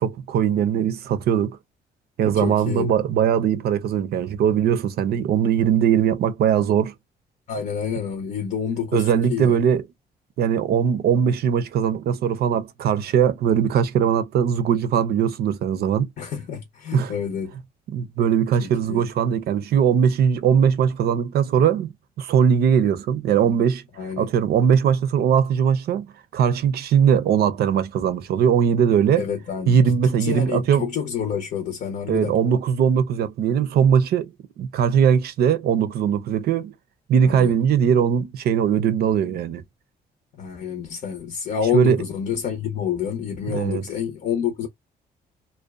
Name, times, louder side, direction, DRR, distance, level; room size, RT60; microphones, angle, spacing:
voice 1, 0.0-1.6 2.2-6.9 8.9-9.8 10.4-16.1 16.9-17.1 17.9-23.8 24.2-26.1 26.3-29.3 29.7-30.9 32.1-36.7 37.1-39.6 41.7-42.0 43.5-43.8, right 8 dB, 70° right, 0.5 m, -20 dB
voice 2, 2.3-2.9 7.5-9.6 16.2-17.6 18.6-19.1 24.0-24.3 29.2-32.3 37.2-37.5 40.4-44.7, left 8 dB, 60° left, 0.7 m, -28 dB
2.5 x 2.2 x 2.3 m
cardioid pair, 100°, 17 cm